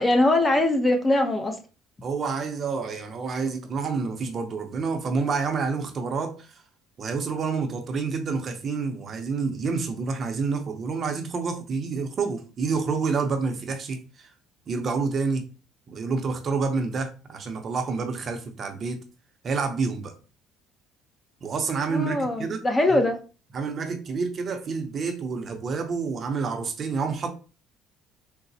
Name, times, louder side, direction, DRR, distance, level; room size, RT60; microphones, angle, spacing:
voice 1, 0.0-1.6 21.9-23.2, left 1 dB, 20° left, 0.6 m, -22 dB
voice 2, 2.0-6.6 7.0-14.3 14.7-15.5 15.9-19.0 19.4-20.1 21.4-22.6 23.5-27.3, right 4 dB, 45° right, 0.6 m, -28 dB
3.9 x 2.0 x 2.7 m
cardioid pair, 95°, 0 cm